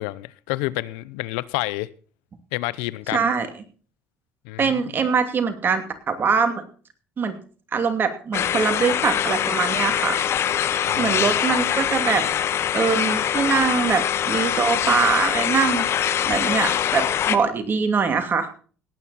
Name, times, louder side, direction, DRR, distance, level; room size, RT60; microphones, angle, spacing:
voice 1, 0.0-1.9 2.5-3.2 4.4-4.7 10.8-11.2, left 19 dB, 85° left, 0.6 m, -29 dB
voice 2, 3.1-3.5 4.6-6.6 7.2-7.3 7.7-10.2 11.0-12.2 12.7-15.9 16.3-18.5, right 5 dB, 40° right, 2.6 m, -23 dB
sound 1, 8.3-17.4, left 10 dB, 50° left, 1.0 m, -23 dB
18.0 x 9.3 x 4.2 m
supercardioid pair, 85°, 5 cm